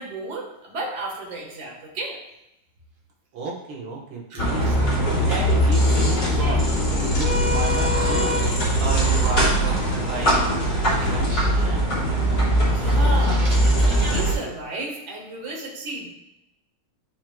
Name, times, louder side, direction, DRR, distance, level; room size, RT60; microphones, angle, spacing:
voice 1, 0.0-2.2 4.3-4.8 12.6-13.5 13.9-16.1, right 2 dB, 40° right, -2 dB, 1.7 m, -33 dB
voice 2, 3.3-8.4 8.8-10.6 10.9-11.9, right 3 dB, 80° right, -3 dB, 2.1 m, -33 dB
sound 1, 4.4-14.3, equal, 60° left, 3.0 m, -21 dB
sound 2, 5.9-14.2, left 1 dB, 55° right, 2.2 m, -33 dB
12.0 x 4.5 x 2.3 m, 0.85 s
omnidirectional pair, 2.2 m